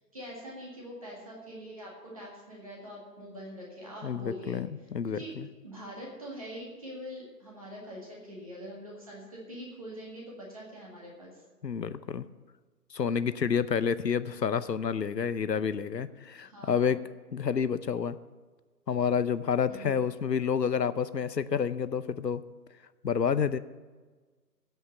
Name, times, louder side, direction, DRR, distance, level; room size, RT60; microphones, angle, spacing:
voice 1, 0.1-4.6 5.1-5.4 5.6-11.4 16.4-16.9 19.7-20.0, equal, 20° right, -3 dB, 1.9 m, -44 dB
voice 2, 4.0-5.5 11.6-12.3 12.9-17.0 17.3-18.2 18.9-22.4 23.0-23.6, left 7 dB, 75° left, 14 dB, 0.8 m, -29 dB
16.0 x 5.7 x 8.1 m, 1.4 s
figure-of-eight pair, 165°, 50 cm